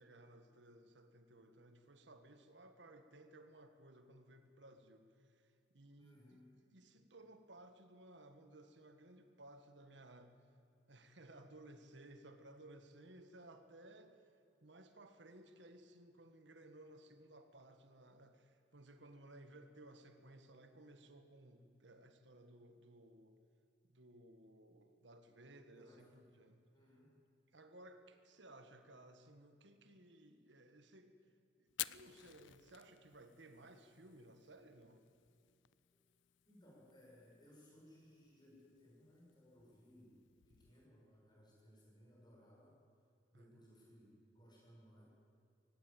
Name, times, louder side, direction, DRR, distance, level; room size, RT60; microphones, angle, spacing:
voice 1, 0.0-6.4 6.7-10.3 10.9-14.2 14.6-23.4 23.8-26.6 27.5-31.2 31.6-35.0 43.3-43.6, right 1 dB, 70° right, 7 dB, 1.5 m, -59 dB
voice 2, 6.0-6.6 25.7-26.2 26.7-27.2 36.4-42.8 43.3-45.0, equal, 25° left, -3 dB, 6.8 m, -64 dB
Fire, 31.7-40.9, left 16 dB, 75° left, 0.4 m, -54 dB
18.0 x 17.0 x 9.1 m, 2.5 s
head